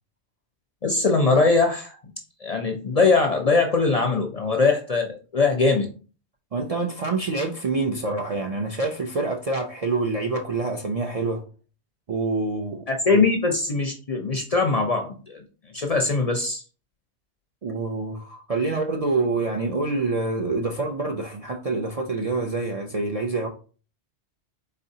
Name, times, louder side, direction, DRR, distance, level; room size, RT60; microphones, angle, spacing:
voice 1, 0.8-2.0 2.4-5.9 12.9-15.4 15.7-16.6, left 3 dB, 50° left, 3 dB, 0.5 m, -21 dB
voice 2, 6.5-11.4 12.1-12.9 13.1-13.2 17.6-23.5, right 3 dB, 50° right, 2 dB, 0.4 m, -26 dB
4.2 x 3.8 x 2.7 m, 0.38 s
omnidirectional pair, 1.2 m